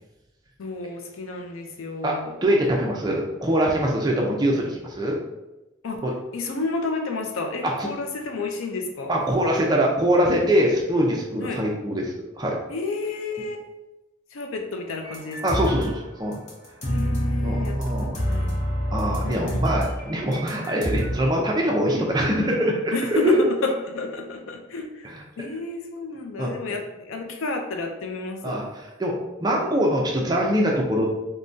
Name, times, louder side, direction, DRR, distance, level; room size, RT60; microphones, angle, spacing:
voice 1, 0.6-2.3 5.8-6.0 6.3-9.2 11.4-11.6 12.7-13.6 14.3-15.6 16.9-18.6 19.2-19.6 22.9-25.1 25.4-28.6, left 3 dB, 85° left, 4 dB, 0.5 m, -30 dB
voice 2, 2.0-5.2 6.0-6.1 7.6-7.9 9.1-12.6 15.4-16.4 17.4-18.2 18.9-23.5 25.0-25.2 26.4-26.5 28.4-31.1, equal, 20° right, -1 dB, 0.4 m, -23 dB
sound 1, 15.0-16.0 16.3-21.1, equal, 35° left, 0.6 m, -27 dB
3.5 x 2.1 x 2.5 m, 1.0 s
head